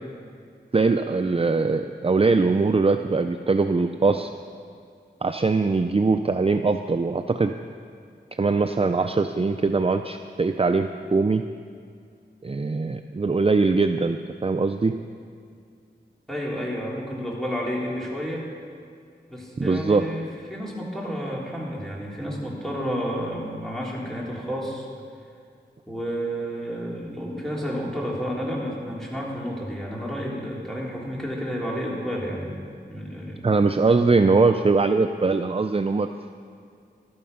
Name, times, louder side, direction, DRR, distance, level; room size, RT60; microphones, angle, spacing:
voice 1, 0.7-4.3 5.2-7.5 8.3-11.4 12.4-14.9 19.6-20.0 33.4-36.1, right 3 dB, 30° right, 7 dB, 0.5 m, -21 dB
voice 2, 16.3-18.5 19.3-24.9 25.9-32.6 32.9-33.5, equal, ahead, -4 dB, 3.5 m, -31 dB
14.5 x 12.5 x 5.5 m, 2.3 s
wide cardioid pair, 65°, 18 cm